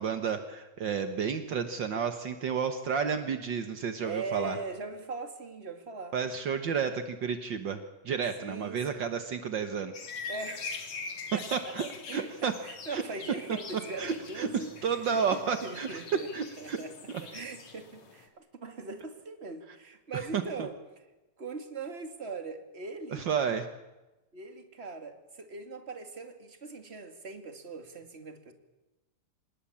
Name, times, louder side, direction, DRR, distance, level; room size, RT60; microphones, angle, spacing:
voice 1, 0.0-4.6 6.1-7.8 8.0-10.1 11.5-12.5 12.9-13.0 14.0-14.5 14.8-16.0 16.3-16.8 17.1-17.2 20.3-20.4 23.1-23.7, right 6 dB, 70° right, 8 dB, 1.1 m, -31 dB
voice 2, 4.0-6.1 8.4-8.8 10.3-10.9 11.3-11.7 12.1-16.3 16.6-16.9 17.2-20.8 21.4-23.3 24.3-28.5, right 3 dB, 20° right, 7 dB, 2.0 m, -40 dB
sound 1, 9.9-18.3, left 4 dB, 55° left, 3.9 m, -43 dB
26.0 x 20.5 x 8.7 m, 1.1 s
omnidirectional pair, 3.9 m